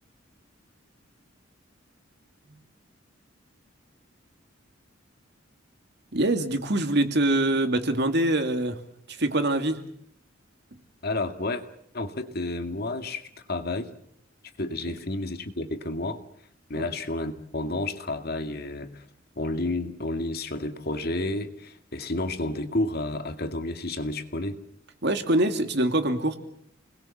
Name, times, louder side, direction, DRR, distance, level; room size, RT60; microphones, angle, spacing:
voice 1, 6.1-8.8 9.1-9.8 14.9-15.0 16.7-16.9 25.0-26.4, right 1 dB, 60° right, 7 dB, 2.6 m, -24 dB
voice 2, 11.0-11.6 11.9-13.9 14.6-16.2 16.7-19.0 19.4-24.6, left 2 dB, 50° left, 7 dB, 2.2 m, -31 dB
29.5 x 20.5 x 7.3 m, 0.72 s
head